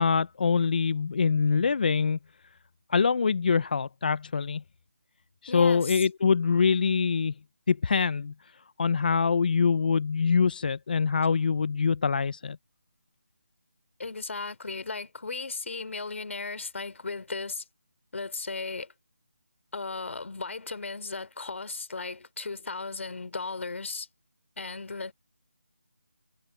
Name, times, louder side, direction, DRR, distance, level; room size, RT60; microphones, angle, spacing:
voice 1, 0.0-2.2 2.9-4.6 5.4-7.3 7.7-8.3 8.8-12.6, left 5 dB, 35° left, 0.6 m, -24 dB
voice 2, 5.5-6.0 14.0-17.6 18.1-18.9 19.7-24.1 24.6-25.1, left 3 dB, 60° left, 3.5 m, -36 dB
figure-of-eight pair, 170°, 8 cm